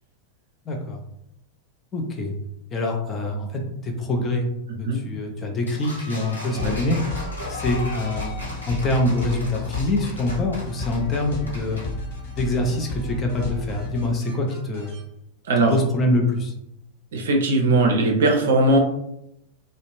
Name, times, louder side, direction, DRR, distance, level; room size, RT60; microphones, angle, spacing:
voice 1, 0.7-1.0 1.9-2.3 2.7-4.5 4.8-7.0 7.5-11.8 12.4-14.9 15.7-16.5, left 1 dB, 20° left, 1 dB, 0.5 m, -25 dB
sound 1, 5.7-11.9, left 2 dB, 80° left, 0.8 m, -37 dB
sound 2, 6.6-15.0, left 2 dB, 50° left, 1.1 m, -33 dB
voice 2, 17.1-18.8, right 2 dB, 60° right, 2 dB, 0.5 m, -19 dB
2.4 x 2.0 x 3.0 m, 0.80 s
figure-of-eight pair, 90°, 0 cm